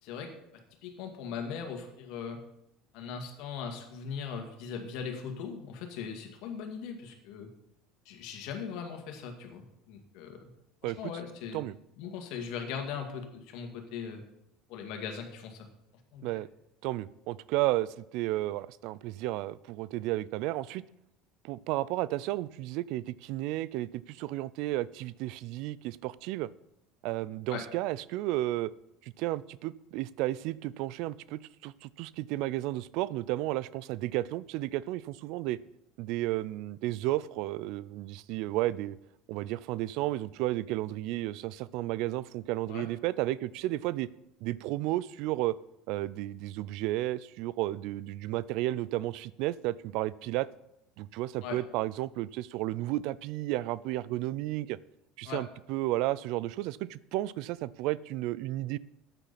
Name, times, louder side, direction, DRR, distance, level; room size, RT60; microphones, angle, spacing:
voice 1, 0.0-2.4 2.9-7.5 8.1-10.5 10.8-11.6 12.0-14.2 14.7-15.7 16.1-16.3 27.5-27.6 42.7-42.9 51.4-51.6 55.2-55.4, left 6 dB, 70° left, 4 dB, 2.1 m, -39 dB
voice 2, 16.8-20.8 21.4-26.5 27.0-28.7 29.0-35.6 36.0-39.0 39.3-44.1 44.4-45.5 45.9-50.5 51.0-54.8 55.2-58.8, right 16 dB, 70° right, 19 dB, 0.4 m, -33 dB
13.0 x 9.0 x 4.2 m, 0.82 s
supercardioid pair, 100°, 0 cm